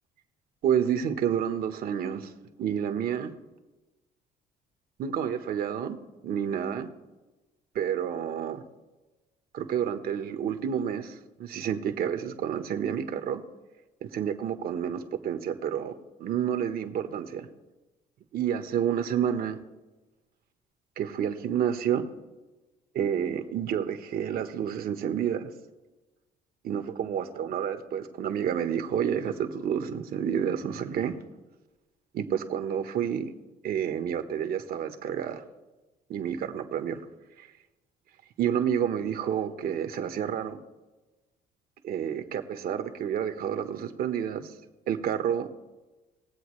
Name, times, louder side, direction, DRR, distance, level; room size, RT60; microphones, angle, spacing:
voice 1, 0.6-2.3 2.6-3.3 5.0-6.0 6.2-6.9 7.7-8.6 9.5-13.4 14.0-15.9 16.2-17.5 18.3-19.6 21.0-22.0 22.9-25.5 26.6-31.2 32.1-33.3 33.6-35.4 36.1-37.0 37.4-37.5 38.4-40.6 41.8-44.5 44.9-45.5, right 8 dB, 60° right, 7 dB, 1.3 m, -29 dB
20.5 x 7.9 x 3.2 m, 1.1 s
cardioid pair, 110°, 17 cm